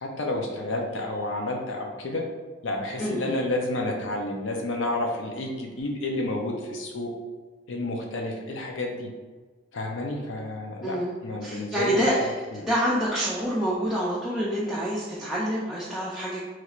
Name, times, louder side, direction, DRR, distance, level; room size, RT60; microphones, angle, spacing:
voice 1, 0.0-2.2 2.6-7.1 7.7-9.1 9.7-11.0 11.2-12.0, left 2 dB, 85° left, 1 dB, 0.6 m, -30 dB
voice 2, 3.0-3.4 10.8-11.1 11.4-16.4, equal, ahead, -9 dB, 0.4 m, -27 dB
3.1 x 3.0 x 2.4 m, 1.3 s
head